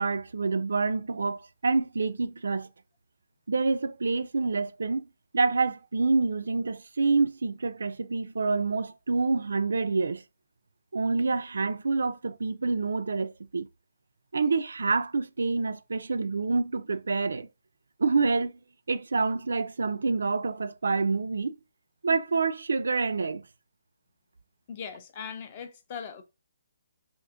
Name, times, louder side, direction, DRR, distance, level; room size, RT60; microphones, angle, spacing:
voice 1, 0.0-2.7 3.5-5.1 5.3-10.2 10.9-13.7 14.3-17.5 18.0-18.6 18.9-21.6 22.0-23.5, right 4 dB, 90° right, 0.4 m, -27 dB
voice 2, 24.7-26.2, left 7 dB, 20° left, 0.4 m, -39 dB
3.6 x 2.4 x 2.5 m
hypercardioid pair, 180°, 0 cm